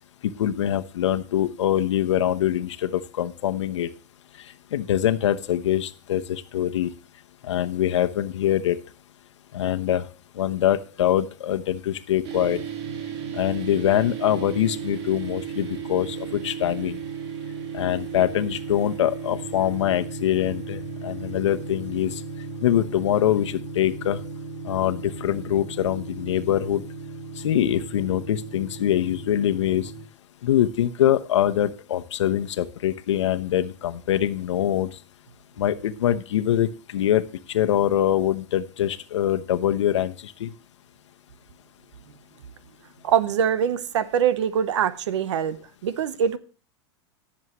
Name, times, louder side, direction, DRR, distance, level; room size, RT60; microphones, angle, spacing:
voice 1, 0.2-3.9 4.7-6.9 7.4-8.8 9.5-10.0 10.3-12.6 13.3-17.0 17.7-22.2 22.6-24.2 24.6-26.8 27.4-29.9 30.4-34.9 35.6-37.2 37.5-40.5, left 11 dB, 85° left, 0.9 m, -24 dB
sound 1, 12.2-30.0, right 5 dB, 65° right, 2.2 m, -35 dB
voice 2, 43.0-46.4, right 8 dB, 85° right, 1.0 m, -23 dB
18.5 x 7.3 x 3.1 m
hypercardioid pair, 115°, 15 cm